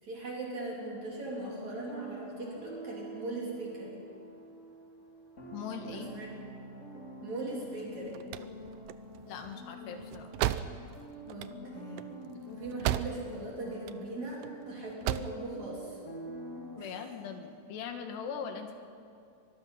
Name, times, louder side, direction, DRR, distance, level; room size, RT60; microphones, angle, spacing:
voice 1, 0.0-4.0 5.9-6.3 7.2-8.2 11.3-12.1 12.5-16.0 16.8-17.0, right 2 dB, 45° right, -4 dB, 4.8 m, -39 dB
sound 1, 0.8-16.8, equal, 25° left, 1.9 m, -47 dB
voice 2, 5.5-6.1 9.3-10.4 16.8-18.8, left 6 dB, 80° left, 5 dB, 3.7 m, -40 dB
sound 2, 7.9-13.5 13.7-14.5 14.8-15.4, right 13 dB, 80° right, 2.5 m, -35 dB
24.5 x 20.5 x 5.8 m, 2.6 s
omnidirectional pair, 4.8 m